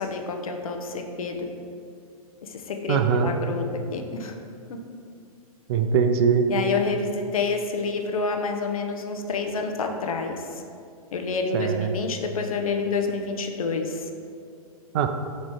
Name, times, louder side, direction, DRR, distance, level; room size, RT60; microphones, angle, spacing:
voice 1, 0.0-1.5 2.4-3.7 3.9-4.4 6.5-10.6 11.1-14.1, left 4 dB, 65° left, 4 dB, 0.8 m, -28 dB
voice 2, 2.9-3.3 5.7-6.5 11.5-11.9 14.9-15.1, right 6 dB, 45° right, 7 dB, 0.5 m, -21 dB
7.3 x 3.2 x 5.0 m, 2.4 s
figure-of-eight pair, 110°, 19 cm